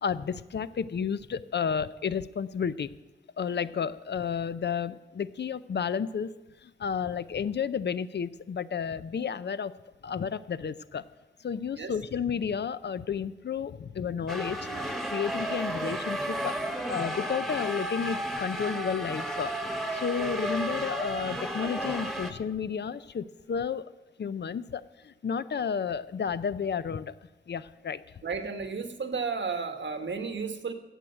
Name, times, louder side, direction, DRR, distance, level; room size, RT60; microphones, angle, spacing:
voice 1, 0.0-2.9 3.4-6.3 6.6-9.7 10.0-11.1 11.4-14.6 14.8-19.5 19.9-23.9 24.2-27.2 27.5-28.0, left 7 dB, 70° left, 15 dB, 0.5 m, -32 dB
sound 1, 14.3-22.3, right 1 dB, ahead, 1.2 m, -33 dB
voice 2, 28.2-30.7, right 5 dB, 80° right, 8 dB, 1.3 m, -33 dB
16.0 x 6.3 x 7.8 m, 1.1 s
wide cardioid pair, 100°, 19 cm